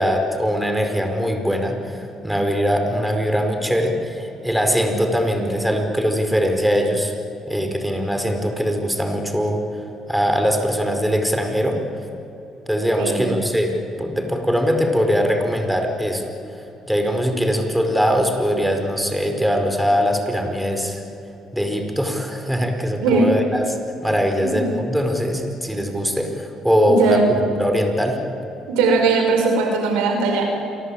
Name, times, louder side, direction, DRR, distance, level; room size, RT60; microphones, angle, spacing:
voice 1, 0.0-7.1 7.5-9.6 10.1-11.8 12.7-13.7 14.0-21.0 21.5-23.8 24.0-27.2 27.6-28.2, equal, 5° right, 4 dB, 5.0 m, -21 dB
voice 2, 13.0-13.4 23.0-23.3 24.4-24.6 26.8-27.4 28.7-30.6, right 3 dB, 90° right, 4 dB, 5.4 m, -19 dB
29.0 x 23.0 x 8.9 m, 2.8 s
supercardioid pair, 75°, 0 cm